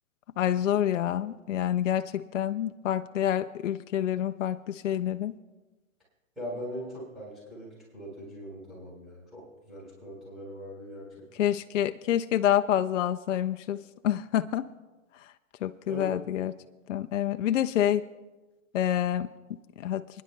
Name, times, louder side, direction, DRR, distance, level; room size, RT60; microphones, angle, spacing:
voice 1, 0.4-5.3 11.4-13.8 14.0-14.6 15.6-16.5 16.9-18.0 18.7-19.3 19.8-20.0, left 11 dB, 65° left, 9 dB, 0.5 m, -27 dB
voice 2, 6.4-11.2 15.9-16.2, equal, ahead, -7 dB, 3.8 m, -41 dB
30.0 x 10.0 x 2.2 m, 1.2 s
hypercardioid pair, 155°, 41 cm